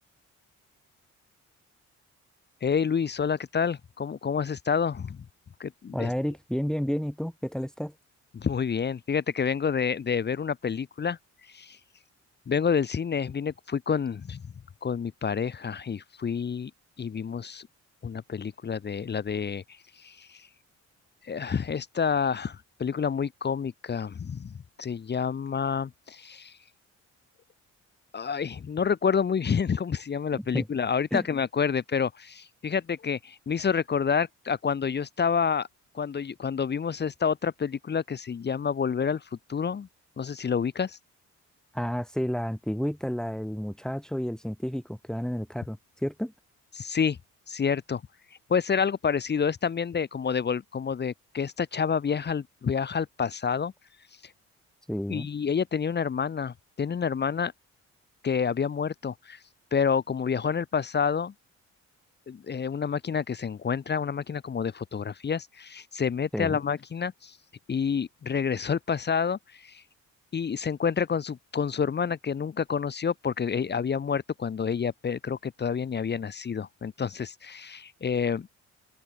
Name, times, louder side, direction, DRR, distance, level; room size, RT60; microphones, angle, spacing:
voice 1, 2.6-5.2 5.6-6.1 8.3-11.8 12.5-14.5 14.8-16.7 17.0-17.7 18.0-20.5 21.2-26.6 28.1-35.7 35.9-39.9 40.2-41.0 46.7-47.2 47.5-48.0 48.5-53.7 54.2-54.3 55.1-57.5 58.2-59.4 59.7-61.3 62.3-67.4 67.7-69.8 70.3-78.5, left 6 dB, 35° left, 1.0 m, -28 dB
voice 2, 5.9-7.9 30.3-30.7 31.1-31.3 41.7-46.3 54.9-55.3 66.3-66.6, equal, ahead, 4.0 m, -31 dB
open air
cardioid pair, 90°, 30 cm